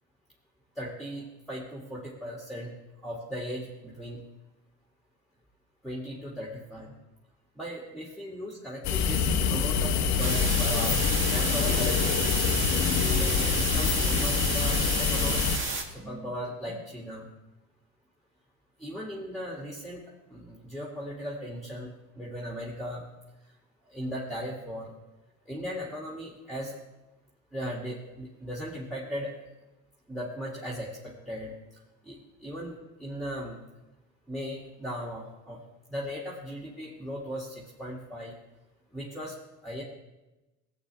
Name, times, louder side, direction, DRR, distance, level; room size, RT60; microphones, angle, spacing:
voice 1, 0.8-2.7 3.0-4.2 5.8-6.9 7.6-11.0 11.3-12.3 13.0-15.6 15.9-17.3 18.8-23.1 23.8-24.9 25.5-26.8 27.5-29.3 30.1-31.5 32.0-33.6 34.3-35.6 35.9-38.3 38.9-39.3 39.6-39.8, equal, ahead, -3 dB, 2.3 m, -37 dB
sound 1, 8.8-15.6, left 6 dB, 45° left, 1.2 m, -26 dB
sound 2, 10.2-15.8, right 3 dB, 30° right, 1.9 m, -31 dB
16.0 x 8.5 x 3.4 m, 1.1 s
hypercardioid pair, 80°, 37 cm